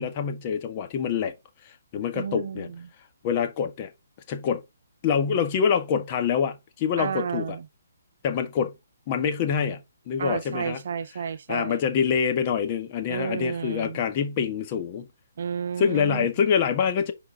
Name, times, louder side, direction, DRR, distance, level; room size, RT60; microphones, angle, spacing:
voice 1, 0.0-1.3 1.6-2.7 3.2-3.9 4.3-4.6 5.0-7.6 8.2-8.7 9.1-10.8 11.5-15.1 15.8-17.1, left 7 dB, 35° left, 1.8 m, -26 dB
voice 2, 2.1-2.8 7.0-7.7 10.2-11.8 13.1-14.0 15.4-16.5, right 7 dB, 60° right, 0.7 m, -32 dB
9.8 x 4.8 x 3.7 m
figure-of-eight pair, 140°, 0 cm